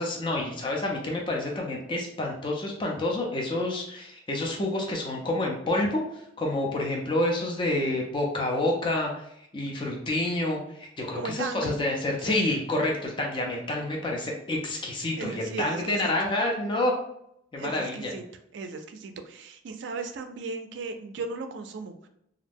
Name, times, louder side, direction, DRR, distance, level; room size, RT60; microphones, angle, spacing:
voice 1, 0.0-6.0 6.4-9.3 9.5-16.9 17.5-18.1, left 1 dB, 25° left, 0 dB, 0.4 m, -28 dB
voice 2, 11.1-11.7 12.2-12.5 15.2-16.1 17.6-18.2 18.5-22.1, right 4 dB, 65° right, 7 dB, 0.3 m, -36 dB
2.4 x 2.1 x 3.3 m, 0.75 s
head